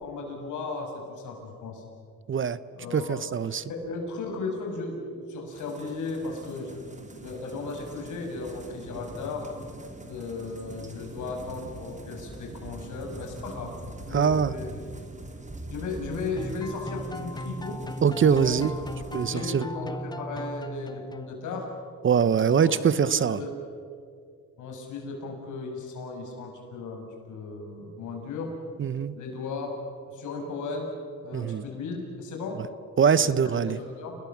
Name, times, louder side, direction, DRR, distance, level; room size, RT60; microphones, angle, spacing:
voice 1, 0.0-1.8 2.7-3.2 3.7-9.4 10.1-14.7 15.7-17.8 18.3-18.6 19.1-21.7 22.5-23.5 24.6-28.5 29.1-29.7 30.1-30.9 31.2-32.6 33.1-34.2, left 3 dB, 80° left, 2 dB, 6.4 m, -36 dB
voice 2, 2.9-3.6 14.1-14.5 18.0-18.7 19.1-19.6 22.0-23.4 28.8-29.1 31.3-31.6 33.0-33.8, right 7 dB, 40° right, 17 dB, 0.9 m, -23 dB
sound 1, 5.5-19.3, right 2 dB, 25° right, 3.6 m, -43 dB
sound 2, 16.4-21.6, left 1 dB, 15° left, 1.2 m, -38 dB
29.0 x 20.0 x 7.3 m, 2.3 s
cardioid pair, 90°, 30 cm